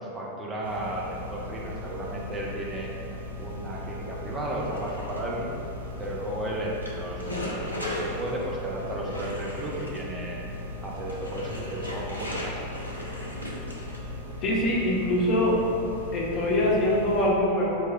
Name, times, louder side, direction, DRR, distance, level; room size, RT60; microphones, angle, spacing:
voice 1, 0.0-2.9 3.4-5.6 6.0-10.4 10.8-12.7, right 1 dB, 15° right, -4 dB, 0.5 m, -34 dB
sound 1, 0.6-17.3, left 2 dB, 70° right, 0.4 m, -39 dB
sound 2, 4.5-14.2, left 1 dB, 85° left, 0.5 m, -38 dB
voice 2, 14.4-15.6 16.1-17.8, left 1 dB, 35° left, -4 dB, 0.7 m, -23 dB
4.5 x 2.2 x 3.3 m, 2.7 s
figure-of-eight pair, 90°, 0 cm